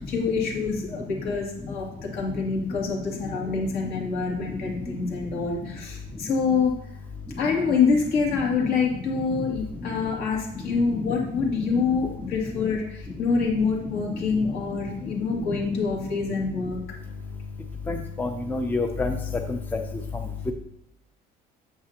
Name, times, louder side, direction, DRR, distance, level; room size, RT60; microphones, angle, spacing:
voice 1, 0.0-6.7 7.4-16.8, left 5 dB, 65° left, -2 dB, 2.5 m, -26 dB
voice 2, 17.9-19.2 19.5-19.8, left 3 dB, 10° left, 5 dB, 0.5 m, -28 dB
8.7 x 7.4 x 2.8 m, 0.78 s
cardioid pair, 160°, 17 cm